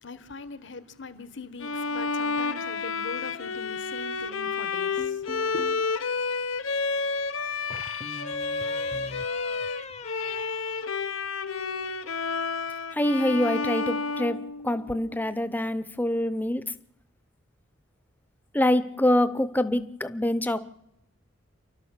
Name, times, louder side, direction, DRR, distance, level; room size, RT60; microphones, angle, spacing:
voice 1, 0.0-5.7, left 3 dB, 60° left, 1.3 m, -41 dB
Bowed string instrument, 1.6-15.1, left 4 dB, 80° left, 1.0 m, -30 dB
sound 1, 5.0-5.9 7.7-11.5, left 3 dB, 35° left, 0.9 m, -42 dB
voice 2, 12.9-16.7 18.5-20.6, left 1 dB, 10° left, 0.7 m, -25 dB
29.0 x 12.0 x 7.4 m
head